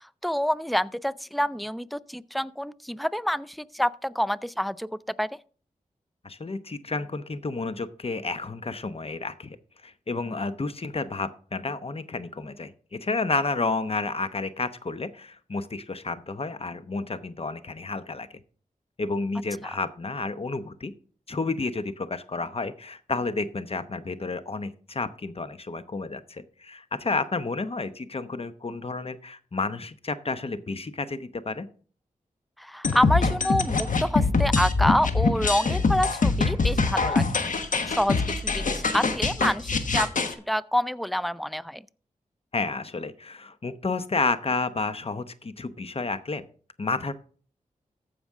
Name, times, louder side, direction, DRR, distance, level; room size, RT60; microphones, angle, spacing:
voice 1, 0.2-4.9 5.2-5.3 32.6-37.2 37.9-40.1 40.5-41.8, equal, ahead, 0.4 m, -27 dB
voice 2, 6.2-9.6 9.8-18.3 19.0-20.9 21.3-31.7 42.5-46.4 46.8-47.1, left 3 dB, 45° left, 0.8 m, -31 dB
sound 1, 32.8-40.3, left 4 dB, 65° left, 1.2 m, -24 dB
14.5 x 5.1 x 3.6 m
cardioid pair, 45°, 14 cm